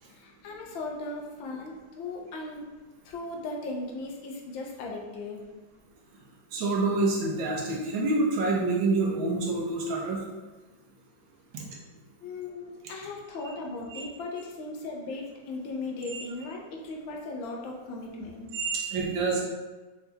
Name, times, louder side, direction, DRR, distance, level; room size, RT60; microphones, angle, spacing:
voice 1, 0.0-2.7 3.0-5.4 12.2-18.5, left 2 dB, 85° left, -1 dB, 1.5 m, -37 dB
voice 2, 6.5-10.2 13.9-14.0 16.1-16.2 18.5-19.4, right 3 dB, 90° right, -2 dB, 1.6 m, -27 dB
5.7 x 2.8 x 3.3 m, 1.2 s
omnidirectional pair, 2.1 m